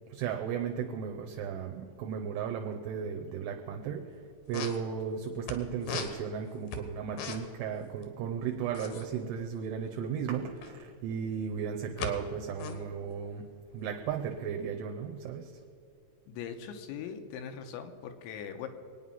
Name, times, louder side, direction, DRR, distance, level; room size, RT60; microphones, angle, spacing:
voice 1, 0.1-4.0 4.5-13.5 13.7-15.5, right 7 dB, 75° right, 3 dB, 2.7 m, -35 dB
sound 1, 4.1-4.2 4.4-5.6 5.8-7.7 7.9-8.0 8.3-10.8 11.4-12.1 12.4-14.3, left 5 dB, 65° left, 2.4 m, -39 dB
voice 2, 16.3-18.7, left 7 dB, 80° left, 7 dB, 3.3 m, -41 dB
24.0 x 9.3 x 5.6 m, 2.4 s
omnidirectional pair, 5.5 m